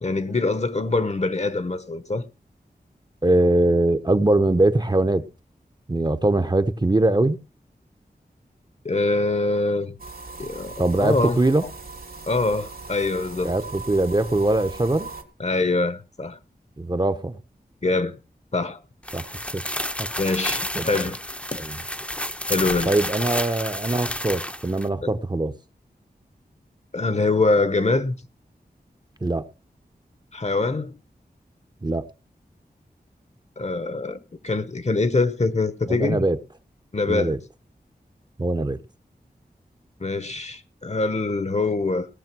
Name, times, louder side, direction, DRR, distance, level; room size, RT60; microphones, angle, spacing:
voice 1, 0.0-2.2 8.8-9.9 10.4-11.4 12.3-13.6 15.4-16.4 17.8-18.2 18.5-18.8 20.2-21.2 21.5-21.6 22.5-22.9 25.0-25.1 26.9-28.2 30.3-30.9 33.6-36.3 36.9-37.4 40.0-42.1, left 3 dB, 40° left, 1.1 m, -24 dB
voice 2, 3.2-5.2 5.9-7.4 10.8-11.6 13.4-15.1 16.8-17.4 19.1-19.3 19.5-19.6 20.0-20.1 20.8-21.0 21.6-21.8 22.9-25.5 29.2-29.5 31.8-32.1 35.9-36.4 37.1-37.4 38.4-38.8, right 2 dB, 25° right, 0.9 m, -22 dB
sound 1, 10.0-15.2, right 3 dB, 70° right, 2.5 m, -39 dB
sound 2, 19.0-24.9, left 1 dB, 5° left, 0.8 m, -30 dB
18.0 x 6.6 x 6.1 m
wide cardioid pair, 85°, 17 cm